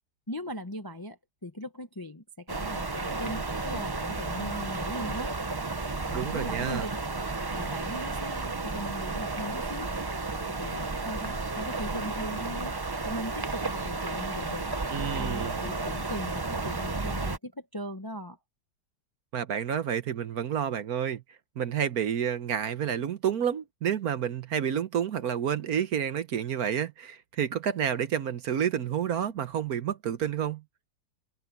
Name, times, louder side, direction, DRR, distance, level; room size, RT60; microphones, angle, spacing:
voice 1, 0.3-5.3 6.0-6.9 7.5-9.9 10.3-12.7 13.0-14.7 15.1-18.4, equal, 20° left, 0.7 m, -39 dB
sound 1, 2.5-17.4, right 3 dB, 35° right, 0.3 m, -32 dB
voice 2, 6.1-6.9 14.9-15.5 19.3-21.2 21.6-30.6, right 8 dB, 60° right, 1.3 m, -29 dB
omnidirectional pair, 1.9 m